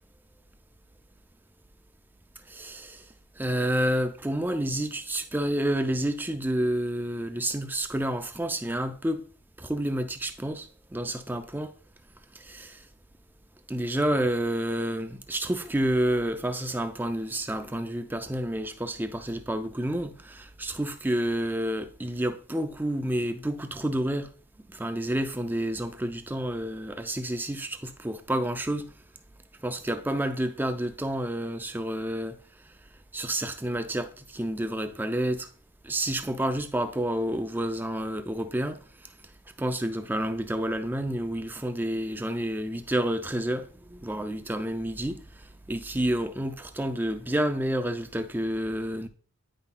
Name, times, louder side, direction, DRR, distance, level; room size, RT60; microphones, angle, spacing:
voice 1, 2.5-3.0 3.4-9.2 9.6-11.7 12.4-12.8 13.7-24.3 24.7-28.9 29.6-32.4 33.1-35.5 35.8-38.8 39.6-45.2 45.7-49.1, right 1 dB, 10° right, 0.4 m, -29 dB
9.2 x 5.5 x 2.2 m
head